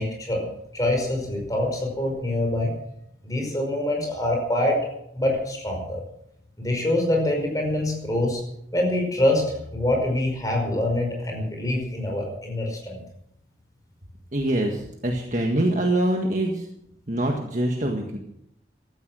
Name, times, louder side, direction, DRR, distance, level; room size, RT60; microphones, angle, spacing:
voice 1, 0.0-2.7 3.2-4.8 5.1-6.0 6.6-8.4 8.7-9.4 9.7-13.0, left 1 dB, 20° left, 1 dB, 5.3 m, -25 dB
voice 2, 14.3-16.7 17.1-18.2, right 1 dB, 45° right, 1 dB, 1.7 m, -24 dB
16.0 x 13.0 x 6.3 m, 0.77 s
head